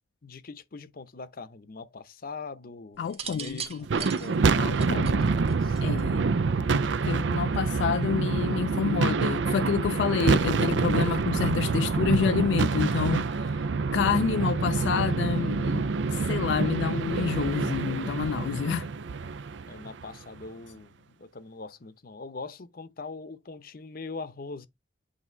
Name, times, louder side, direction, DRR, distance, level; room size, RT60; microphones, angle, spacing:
voice 1, 0.2-5.8 19.7-24.7, left 4 dB, 55° left, 0.7 m, -42 dB
voice 2, 3.0-3.9 4.6-5.5 5.8-6.2 7.0-13.7 13.9-18.9, left 6 dB, 70° left, 0.3 m, -28 dB
sound 1, 3.1-6.2 7.3-7.7, right 6 dB, 35° right, 1.2 m, -39 dB
sound 2, 3.8-20.2, right 4 dB, 80° right, 0.5 m, -26 dB
8.3 x 2.8 x 4.5 m
head